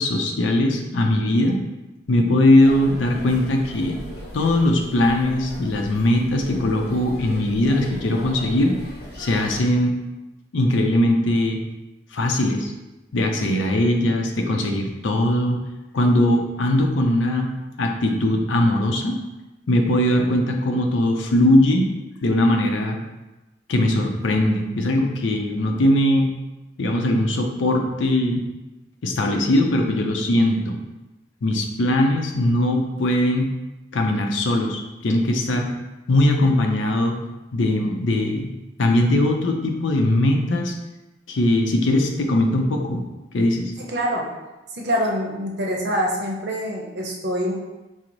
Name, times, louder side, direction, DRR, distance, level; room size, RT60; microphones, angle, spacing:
voice 1, 0.0-1.7 2.1-4.0 4.3-8.8 9.2-9.9 10.5-11.6 12.1-12.7 13.1-15.6 15.9-17.5 17.8-19.2 19.7-21.9 22.2-23.0 23.7-26.3 26.8-28.4 29.0-30.8 31.4-33.5 33.9-35.7 36.1-37.2 37.5-38.5 38.8-40.7 41.3-43.1 43.3-43.7, left 1 dB, 90° left, 2 dB, 0.5 m, -20 dB
sound 1, 2.6-9.6, equal, 55° left, 0.8 m, -38 dB
voice 2, 43.8-44.2 44.7-47.5, equal, 60° right, -1 dB, 0.7 m, -25 dB
4.6 x 2.0 x 3.8 m, 1.1 s
head